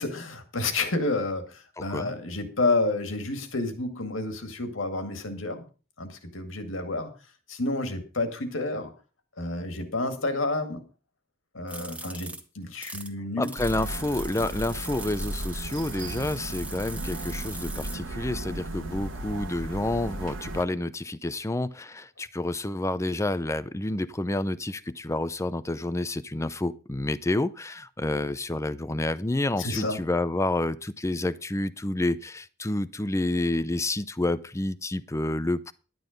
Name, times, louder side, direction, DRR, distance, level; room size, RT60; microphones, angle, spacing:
voice 1, 0.0-5.6 6.0-7.1 7.5-8.9 9.4-10.8 11.5-13.5 29.6-30.0, left 2 dB, 75° left, 2.2 m, -30 dB
voice 2, 1.8-2.1 13.4-35.7, left 2 dB, 15° left, 0.5 m, -29 dB
sound 1, 11.7-13.1 13.4-18.0, right 2 dB, 5° right, 1.3 m, -41 dB
sound 2, 13.6-20.7, right 1 dB, 75° right, 1.4 m, -35 dB
11.0 x 10.0 x 5.2 m
head